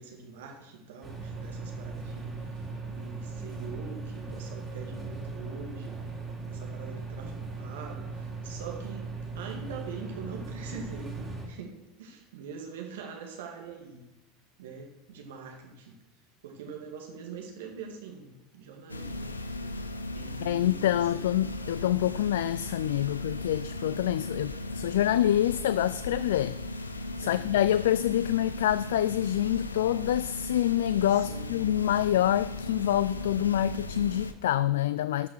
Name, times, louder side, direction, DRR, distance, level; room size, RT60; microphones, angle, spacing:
voice 1, 0.0-2.5 2.9-6.0 6.5-14.1 14.6-16.0 16.4-19.3 20.1-21.2 27.2-27.5 31.1-31.7, right 5 dB, 70° right, 2.0 m, -44 dB
sound 1, 1.0-11.5, right 4 dB, 15° right, 3.3 m, -38 dB
sound 2, 18.9-34.3, left 2 dB, 90° left, 0.7 m, -37 dB
voice 2, 20.4-26.6 27.2-35.3, left 12 dB, 70° left, 0.3 m, -26 dB
13.0 x 5.9 x 6.3 m
figure-of-eight pair, 80°, 0 cm